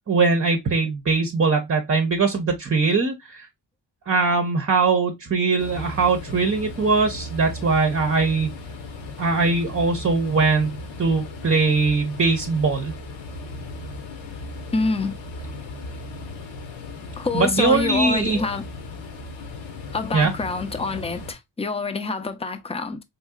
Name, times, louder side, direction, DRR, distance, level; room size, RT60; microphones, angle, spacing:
voice 1, 0.1-3.5 4.1-8.5 9.2-12.9 17.3-18.4 20.1-20.3, right 4 dB, 30° right, 0.7 m, -21 dB
sound 1, 5.6-21.3, left 2 dB, 80° left, 1.0 m, -36 dB
voice 2, 14.7-15.2 17.2-18.7 19.9-23.0, left 3 dB, 15° left, 0.5 m, -26 dB
4.0 x 2.7 x 2.2 m
cardioid pair, 70°, 45 cm